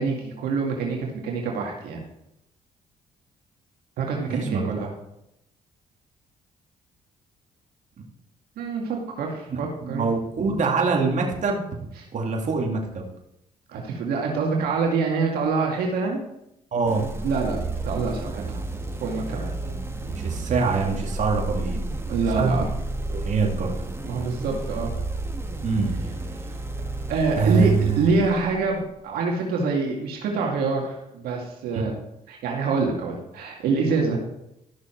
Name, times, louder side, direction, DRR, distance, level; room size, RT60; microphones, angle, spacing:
voice 1, 0.0-2.0 4.0-4.9 8.6-10.1 13.7-16.2 17.2-18.6 19.0-19.5 22.1-22.6 24.0-24.9 27.1-32.0 32.3-34.2, right 4 dB, 75° right, 0 dB, 2.1 m, -26 dB
voice 2, 4.3-4.9 9.5-11.6 12.1-13.0 16.7-17.1 19.6-21.8 22.3-22.5 23.1-23.7 25.6-26.0 27.4-28.1 31.7-31.9, right 4 dB, 50° right, 1 dB, 2.3 m, -25 dB
sound 1, 16.8-28.8, right 2 dB, 15° right, 1.7 m, -31 dB
13.0 x 6.3 x 4.5 m, 0.82 s
supercardioid pair, 70°, 16 cm